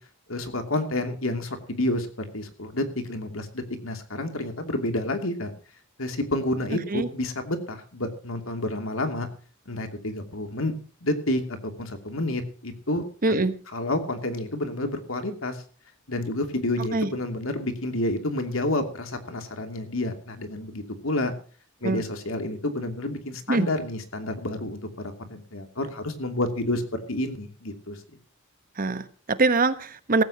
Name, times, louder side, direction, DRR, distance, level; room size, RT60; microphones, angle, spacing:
voice 1, 0.3-5.5 6.0-9.3 9.7-10.7 11.0-13.4 13.7-15.6 16.1-21.3 21.8-28.0, left 1 dB, 75° left, 6 dB, 2.8 m, -29 dB
voice 2, 13.2-13.5 16.9-17.1 21.8-22.0 23.5-23.7 28.8-30.2, right 3 dB, 45° right, 12 dB, 1.2 m, -23 dB
17.0 x 15.5 x 3.0 m, 0.41 s
head